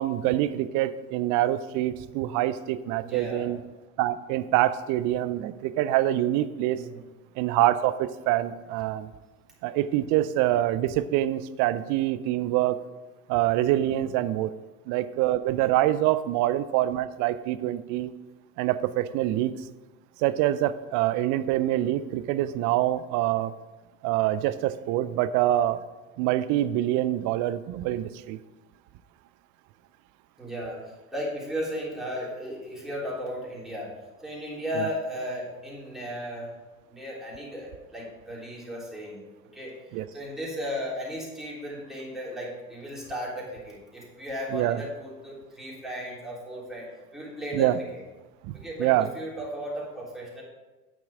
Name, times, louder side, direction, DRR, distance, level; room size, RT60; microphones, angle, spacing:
voice 1, 0.0-3.6 4.0-6.8 7.4-9.1 9.6-12.8 13.3-14.5 14.9-18.1 18.6-19.5 20.2-23.5 24.0-25.8 26.2-28.4 34.8-34.9 39.9-40.1 44.5-44.8 47.5-47.8 48.5-48.6 48.8-49.1, right 14 dB, 45° right, 15 dB, 0.5 m, -25 dB
voice 2, 3.0-3.5 6.7-7.0 13.7-14.1 30.4-30.8 31.1-33.9 34.2-36.5 36.9-39.2 39.5-39.7 40.1-46.9 47.1-48.0 48.5-50.4, equal, ahead, -6 dB, 3.4 m, -35 dB
8.9 x 6.1 x 4.9 m, 1.2 s
figure-of-eight pair, 75°, 44 cm